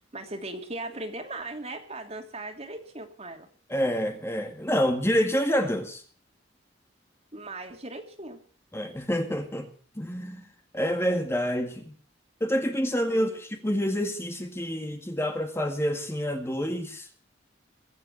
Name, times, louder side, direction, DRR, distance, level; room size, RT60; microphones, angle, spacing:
voice 1, 0.1-3.5 7.3-8.4 13.1-13.4, right 2 dB, 35° right, 5 dB, 2.7 m, -38 dB
voice 2, 3.7-6.0 8.7-10.5 10.7-11.9 12.4-17.1, equal, 15° left, 5 dB, 1.8 m, -28 dB
22.5 x 8.3 x 7.7 m, 0.43 s
head